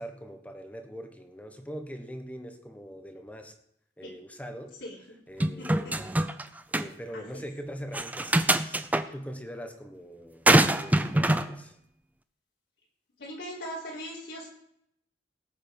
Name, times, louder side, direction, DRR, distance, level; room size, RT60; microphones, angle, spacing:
voice 1, 0.0-3.5 4.0-4.8 5.3-6.0 6.7-8.8 9.1-10.5 10.8-11.8, equal, 10° left, 6 dB, 1.3 m, -42 dB
sound 1, 5.4-6.4 6.7-6.9 7.9-9.0 10.5-11.5, right 1 dB, 10° right, 0.6 m, -23 dB
voice 2, 5.6-5.9 7.1-7.4 13.2-14.5, equal, 80° left, -5 dB, 4.2 m, -40 dB
18.0 x 7.2 x 5.4 m, 0.73 s
head